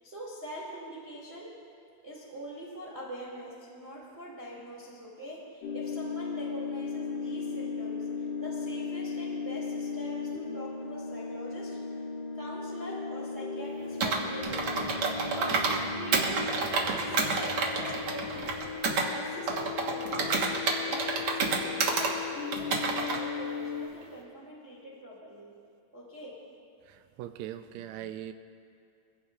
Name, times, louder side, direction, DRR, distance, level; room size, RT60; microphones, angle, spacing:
voice 1, 0.0-1.5 2.0-12.1 12.3-14.8 15.2-15.6 16.0-20.4 20.8-25.5 25.9-26.4, equal, 20° right, -5 dB, 2.2 m, -44 dB
sound 1, 5.6-23.9, left 5 dB, 80° left, 2.9 m, -37 dB
Computer keyboard, 14.0-15.8 16.1-19.1 19.5-22.1 22.5-23.2, right 4 dB, 55° right, 1.8 m, -29 dB
sound 2, 14.4-20.8, right 1 dB, 70° right, 0.7 m, -50 dB
voice 2, 26.9-28.3, right 11 dB, 90° right, 8 dB, 1.6 m, -40 dB
25.0 x 16.0 x 2.4 m, 2.3 s
omnidirectional pair, 3.9 m